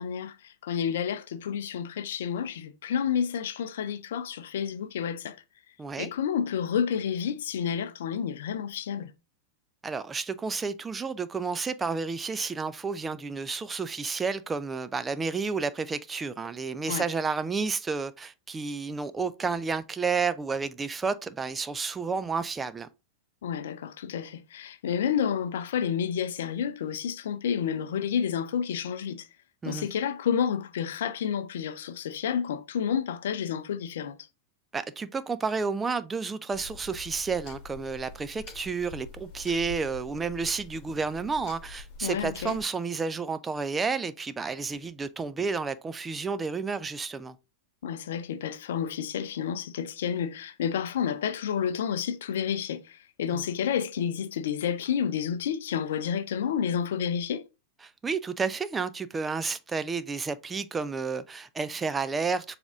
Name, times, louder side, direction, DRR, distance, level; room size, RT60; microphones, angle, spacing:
voice 1, 0.0-5.4 6.0-9.1 16.9-17.1 23.4-29.3 29.6-34.2 42.0-42.6 47.8-57.4, left 8 dB, 60° left, 0.5 m, -30 dB
voice 2, 5.8-6.1 9.8-22.9 29.6-29.9 34.7-47.4 53.3-53.4 57.8-62.6, right 4 dB, 15° right, 0.5 m, -31 dB
sound 1, 36.5-42.6, left 3 dB, 40° left, 1.4 m, -45 dB
7.0 x 3.5 x 3.8 m
figure-of-eight pair, 90°, 0 cm